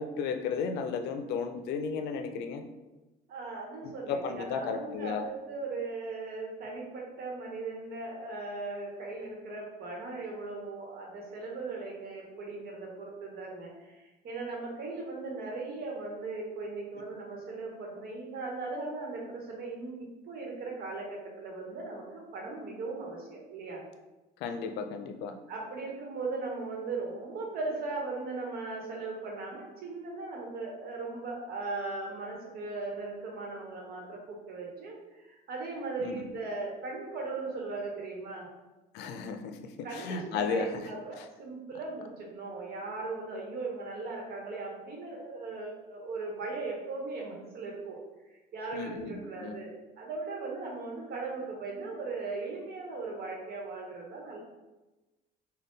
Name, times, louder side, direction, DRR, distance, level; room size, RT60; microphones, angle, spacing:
voice 1, 0.0-2.6 3.8-5.3 24.4-25.3 36.0-36.3 38.9-39.6 39.9-40.9 48.7-49.6, left 5 dB, 85° left, 6 dB, 0.5 m, -34 dB
voice 2, 3.3-23.8 25.5-38.5 39.8-48.0 48.5-54.4, right 3 dB, 65° right, -1 dB, 1.1 m, -38 dB
3.6 x 2.2 x 3.8 m, 1.1 s
cardioid pair, 110°, 17 cm